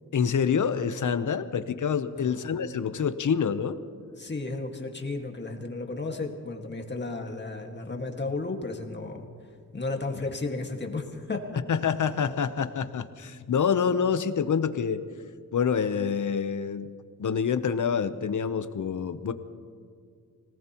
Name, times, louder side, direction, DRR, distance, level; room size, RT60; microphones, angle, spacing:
voice 1, 0.1-3.8 11.7-15.0 15.5-16.9 17.2-19.3, left 7 dB, 60° left, 11 dB, 0.9 m, -27 dB
voice 2, 4.2-9.3 9.7-11.4, left 3 dB, 30° left, 2 dB, 1.9 m, -33 dB
25.0 x 18.5 x 3.0 m, 2.2 s
wide cardioid pair, 100°, 35 cm